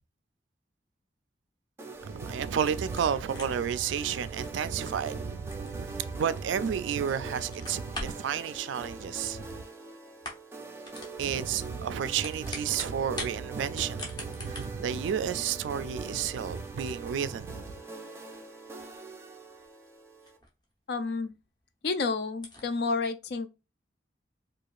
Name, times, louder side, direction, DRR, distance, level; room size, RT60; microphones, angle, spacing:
sound 1, 1.8-20.4, right 3 dB, 15° right, 0.4 m, -43 dB
voice 1, 2.0-9.5 11.2-17.7, right 7 dB, 80° right, 0.3 m, -31 dB
sound 2, 2.9-6.9 7.2-8.3 9.4-9.8 10.1-10.6 10.8-11.2 12.0-13.4 13.7-20.7 21.1-21.2 21.6-21.7 21.9-22.0 22.3-22.7, left 1 dB, 25° left, 0.8 m, -44 dB
voice 2, 20.9-21.3 21.8-23.5, left 4 dB, 60° left, 0.4 m, -30 dB
4.6 x 2.4 x 2.4 m
head